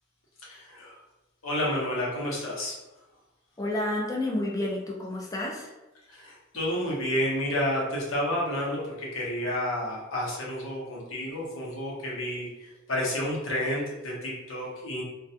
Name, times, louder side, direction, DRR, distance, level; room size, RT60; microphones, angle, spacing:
voice 1, 0.4-1.0 1.4-2.8 6.1-12.5 12.9-15.0, left 1 dB, 80° left, -4 dB, 0.8 m, -30 dB
voice 2, 3.6-5.7, left 1 dB, 15° left, -1 dB, 0.4 m, -30 dB
2.3 x 2.2 x 2.7 m, 1.0 s
head